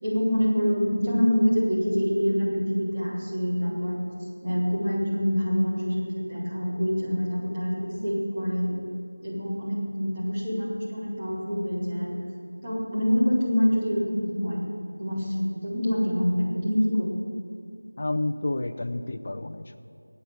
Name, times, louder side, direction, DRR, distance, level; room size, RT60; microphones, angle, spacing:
voice 1, 0.0-8.7 9.2-12.2 12.6-14.7 15.0-17.1, equal, 25° right, -9 dB, 4.5 m, -26 dB
voice 2, 18.0-19.8, left 2 dB, 35° left, 8 dB, 0.7 m, -30 dB
20.5 x 9.3 x 7.5 m, 2.4 s
figure-of-eight pair, 175°, 0 cm